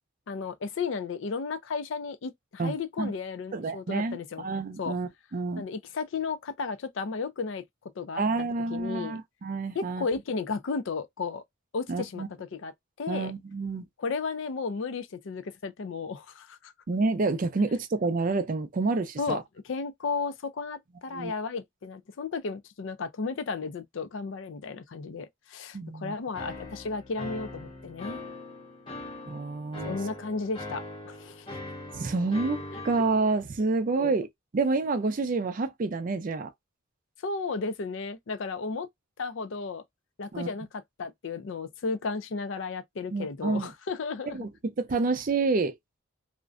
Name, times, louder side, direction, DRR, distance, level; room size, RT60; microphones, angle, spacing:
voice 1, 0.3-4.5 4.8-5.0 5.6-7.6 8.0-8.2 8.7-9.2 9.7-11.4 11.7-12.7 13.0-13.3 14.0-16.7 19.2-28.2 29.8-31.6 33.9-34.2 37.2-38.9 39.2-39.8 40.2-44.5, left 4 dB, 60° left, 0.4 m, -34 dB
voice 2, 2.6-3.1 3.5-5.6 8.2-10.1 11.9-12.3 13.1-13.9 16.9-19.4 21.1-21.3 25.7-26.1 29.3-30.0 31.9-34.3 34.5-36.5 40.3-40.5 43.1-43.7 44.3-45.8, right 3 dB, 40° right, 0.4 m, -28 dB
sound 1, 26.3-33.2, left 2 dB, 25° left, 0.7 m, -41 dB
2.5 x 2.1 x 2.4 m
head